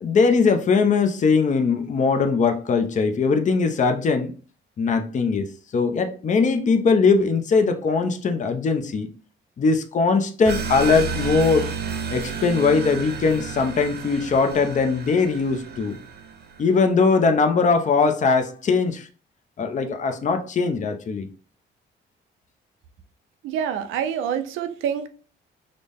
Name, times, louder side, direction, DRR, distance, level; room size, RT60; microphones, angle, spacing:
voice 1, 0.0-4.3 4.8-5.5 5.7-9.1 9.6-11.7 12.1-16.0 16.6-19.1 19.6-21.3, left 4 dB, 40° left, 0.6 m, -20 dB
sound 1, 10.5-16.7, right 6 dB, 55° right, 0.7 m, -31 dB
voice 2, 23.4-25.1, right 8 dB, 90° right, 0.5 m, -26 dB
3.9 x 2.1 x 3.3 m
cardioid pair, 90°, 20 cm